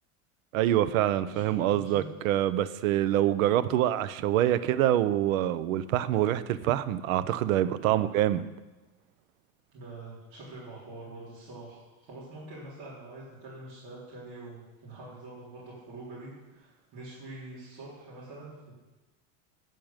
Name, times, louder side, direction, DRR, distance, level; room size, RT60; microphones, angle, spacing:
voice 1, 0.5-8.5, right 12 dB, 90° right, 15 dB, 0.8 m, -25 dB
voice 2, 1.3-2.1 7.8-8.1 9.7-18.7, right 2 dB, 45° right, -8 dB, 4.0 m, -45 dB
9.3 x 6.6 x 8.8 m, 1.1 s
supercardioid pair, 170°, 39 cm